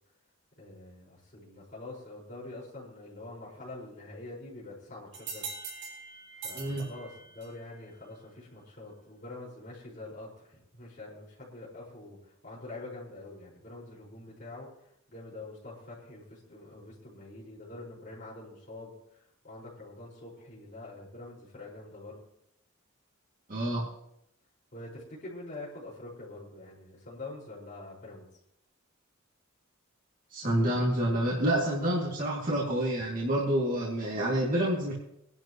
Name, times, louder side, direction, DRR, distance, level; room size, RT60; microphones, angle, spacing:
voice 1, 0.6-5.5 6.3-22.2 24.7-28.2, left 2 dB, 40° left, -6 dB, 5.1 m, -45 dB
sound 1, 5.1-7.7, right 5 dB, 60° right, 4.3 m, -42 dB
voice 2, 23.5-23.9 30.3-34.9, right 1 dB, 40° right, -5 dB, 2.5 m, -28 dB
23.5 x 11.0 x 3.1 m, 0.78 s
head